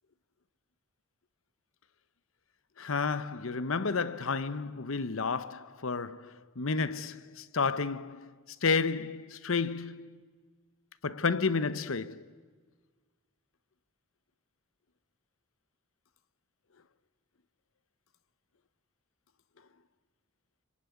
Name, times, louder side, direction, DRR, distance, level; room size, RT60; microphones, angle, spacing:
voice 1, 2.8-8.3 8.6-10.2 11.0-12.2, left 4 dB, 70° left, 0.9 m, -31 dB
25.5 x 25.0 x 9.4 m
head